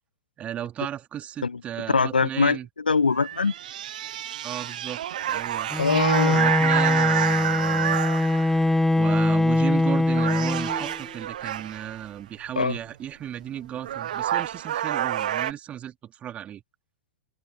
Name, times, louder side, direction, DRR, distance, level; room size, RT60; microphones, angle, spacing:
voice 1, 0.4-2.7 4.4-5.7 6.3-8.0 9.0-16.6, right 10 dB, 25° right, 3.0 m, -35 dB
voice 2, 1.9-3.5 5.8-6.5 12.6-12.8, left 4 dB, 80° left, 0.9 m, -23 dB
sound 1, 3.1-8.7 9.5-9.8 10.1-12.0 13.4-13.5 13.8-15.5, right 11 dB, 60° right, 0.9 m, -28 dB
Bowed string instrument, 5.7-11.1, left 2 dB, 5° left, 0.9 m, -22 dB
figure-of-eight pair, 95°, 5 cm